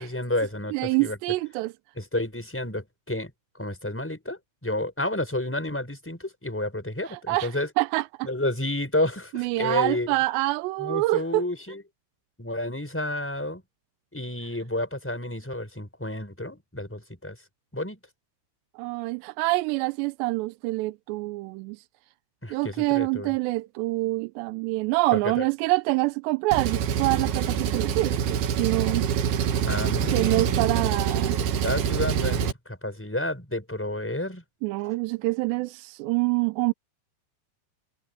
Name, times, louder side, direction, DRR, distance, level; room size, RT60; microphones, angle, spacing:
voice 1, 0.0-1.2 2.0-3.3 3.6-7.7 8.2-10.1 10.8-11.8 12.4-13.6 14.1-17.3 17.7-18.0 22.4-23.3 25.2-25.4 29.6-31.1 31.6-34.4, left 1 dB, 5° left, 5.3 m, -30 dB
voice 2, 0.7-1.7 7.1-8.3 9.3-11.4 18.8-21.8 22.5-29.1 30.1-31.4 34.6-36.7, right 21 dB, 80° right, 2.8 m, -26 dB
Engine, 26.5-32.5, right 8 dB, 65° right, 3.4 m, -25 dB
omnidirectional pair, 5.1 m